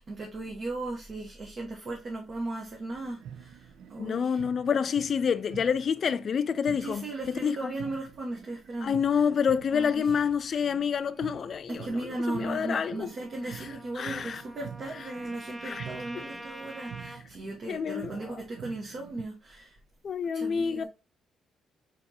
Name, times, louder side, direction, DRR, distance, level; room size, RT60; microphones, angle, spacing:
voice 1, 0.0-4.4 6.8-9.2 9.7-10.1 10.5-10.6 11.7-19.8 20.3-20.8, right 2 dB, 50° right, 1.0 m, -37 dB
sound 1, 2.9-19.2, right 8 dB, 75° right, 0.4 m, -47 dB
voice 2, 4.0-7.7 8.8-11.9 12.3-13.1 13.5-13.7 14.0-14.4 15.6-15.9 16.1-16.3 17.7-18.4 20.0-20.8, left 7 dB, 50° left, 0.4 m, -28 dB
Trumpet, 12.7-17.2, right 1 dB, 5° right, 0.5 m, -45 dB
4.2 x 4.1 x 2.9 m
cardioid pair, 90°, 0 cm